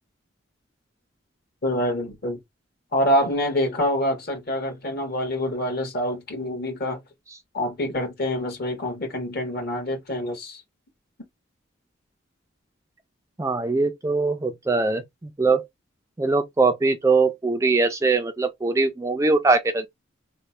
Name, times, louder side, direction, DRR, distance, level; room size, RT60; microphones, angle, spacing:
voice 1, 1.6-2.4 2.9-7.0 7.5-10.6, left 1 dB, 50° left, 1.3 m, -26 dB
voice 2, 13.4-15.7 16.2-19.9, right 3 dB, 15° right, 0.3 m, -22 dB
3.1 x 2.1 x 4.2 m
head